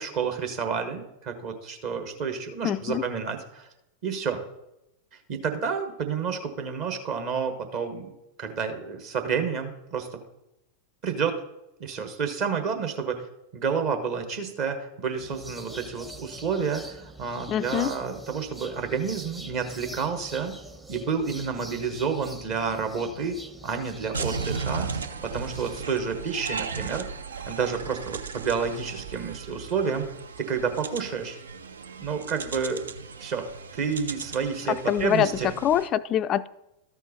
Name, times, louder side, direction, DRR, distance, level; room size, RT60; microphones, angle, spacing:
voice 1, 0.0-3.7 4.0-4.4 5.3-8.1 8.4-10.1 11.0-11.4 11.8-13.2 13.5-20.5 20.9-23.4 23.6-24.9 25.3-27.0 27.5-30.1 30.4-31.4 32.0-32.9 33.2-33.5 33.7-35.5, right 6 dB, 45° right, 5 dB, 1.2 m, -29 dB
voice 2, 2.6-3.0 17.5-18.0 34.7-36.5, left 10 dB, 30° left, 15 dB, 0.3 m, -25 dB
sound 1, 15.2-25.8, right 1 dB, 5° right, 0.7 m, -44 dB
sound 2, 24.1-35.9, right 5 dB, 70° right, 0.5 m, -36 dB
13.0 x 4.5 x 4.2 m, 0.89 s
figure-of-eight pair, 90°, 0 cm